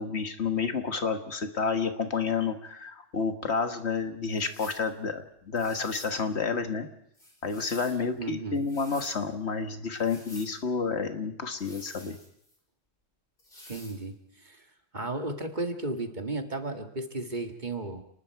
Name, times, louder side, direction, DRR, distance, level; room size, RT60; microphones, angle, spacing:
voice 1, 0.0-6.9 7.4-12.2, left 5 dB, 70° left, 7 dB, 1.8 m, -30 dB
sound 1, 4.3-4.9 5.5-6.2 7.1-8.0 8.5-9.2 9.9-10.5 11.5-12.6 13.4-14.0, left 1 dB, 50° left, 4.9 m, -49 dB
voice 2, 8.2-8.6 13.7-14.1 14.4-14.6 14.9-18.0, right 2 dB, 40° right, 5 dB, 2.1 m, -34 dB
29.5 x 20.0 x 4.7 m, 0.72 s
omnidirectional pair, 1.2 m